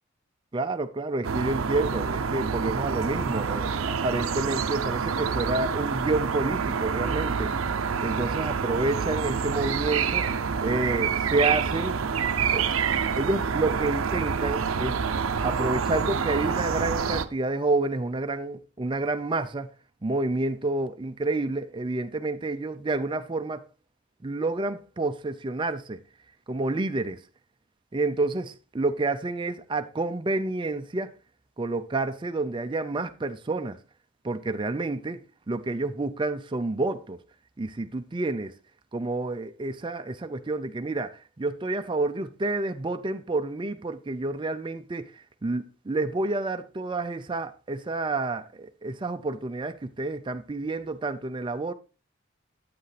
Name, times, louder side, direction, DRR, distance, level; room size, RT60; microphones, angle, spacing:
voice 1, 0.5-7.5 8.0-10.3 10.6-12.0 12.5-12.7 13.2-19.7 20.0-23.7 24.2-26.0 26.5-27.2 27.9-31.1 31.6-33.8 34.2-37.2 37.6-38.5 38.9-51.7, right 2 dB, 25° right, 0.4 m, -29 dB
sound 1, 1.2-17.2, right 6 dB, 90° right, 0.6 m, -27 dB
8.5 x 8.1 x 3.2 m
head